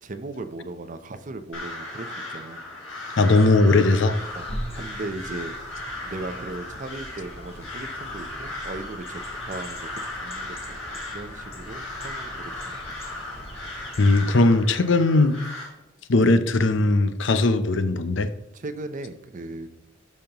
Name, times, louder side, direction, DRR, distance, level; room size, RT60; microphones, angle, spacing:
voice 1, 0.0-2.6 4.4-4.5 4.8-5.5 6.0-10.8 11.1-12.8 18.5-19.7, right 2 dB, 40° right, 10 dB, 0.6 m, -37 dB
Crow, 1.5-15.7, left 1 dB, 85° left, 2.7 m, -36 dB
voice 2, 3.2-4.2 14.0-15.4 16.1-18.3, left 2 dB, 65° left, 11 dB, 0.6 m, -19 dB
sound 1, 4.1-14.2, equal, 30° left, 1.2 m, -41 dB
12.0 x 5.4 x 3.0 m, 0.93 s
head